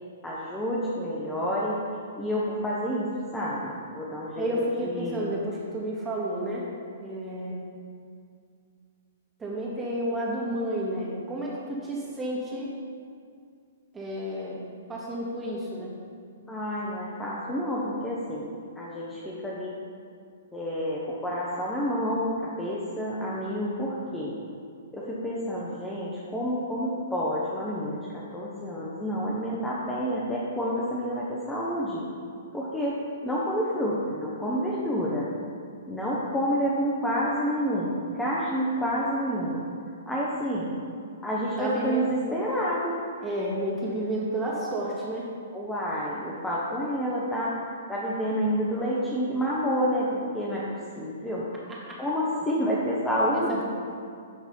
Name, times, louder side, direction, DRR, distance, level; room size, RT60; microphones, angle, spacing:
voice 1, 0.2-1.8 2.2-4.5 4.8-5.2 16.5-18.5 18.8-19.7 20.5-24.3 24.9-32.0 32.5-35.3 35.9-39.6 40.1-40.7 41.2-43.0 45.5-47.6 47.9-51.5 52.0-53.6, equal, 10° left, -6 dB, 1.1 m, -29 dB
voice 2, 4.4-6.7 7.0-7.6 9.4-12.7 13.9-15.9 41.6-42.1 43.2-45.3 51.7-52.0 53.3-53.6, right 1 dB, 15° right, -5 dB, 2.2 m, -31 dB
11.0 x 4.0 x 5.6 m, 2.3 s
hypercardioid pair, 120°, 0 cm